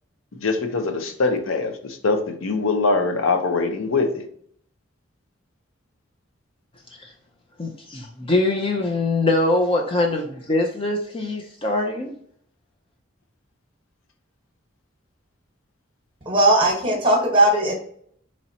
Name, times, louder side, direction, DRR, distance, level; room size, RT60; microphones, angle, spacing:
voice 1, 0.3-4.2, left 3 dB, 90° left, 6 dB, 0.6 m, -23 dB
voice 2, 7.6-12.1, left 2 dB, 25° left, 2 dB, 0.4 m, -23 dB
voice 3, 16.2-17.7, right 1 dB, 25° right, 0 dB, 1.1 m, -18 dB
4.1 x 3.1 x 2.8 m, 0.63 s
head